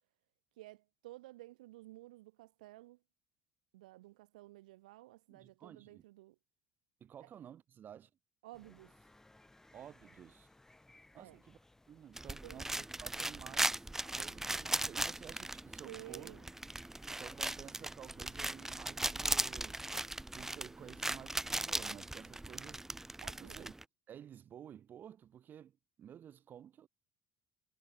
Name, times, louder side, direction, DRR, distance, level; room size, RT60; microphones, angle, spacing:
voice 1, 0.6-3.0 3.7-6.4 7.2-7.3 8.4-9.0 11.2-11.4 12.4-12.6 15.8-16.5 23.2-23.7, right 18 dB, 85° right, 1.0 m, -53 dB
voice 2, 5.3-6.0 7.0-8.1 9.7-10.5 11.1-11.6 11.9-13.9 14.1-16.3 17.1-19.8 20.3-22.8 23.4-23.7 24.1-26.9, right 9 dB, 50° right, 2.5 m, -53 dB
sound 1, 8.5-21.5, left 2 dB, 10° left, 3.1 m, -66 dB
sound 2, 12.2-23.8, right 2 dB, 10° right, 0.5 m, -38 dB
hypercardioid pair, 70°, 4 cm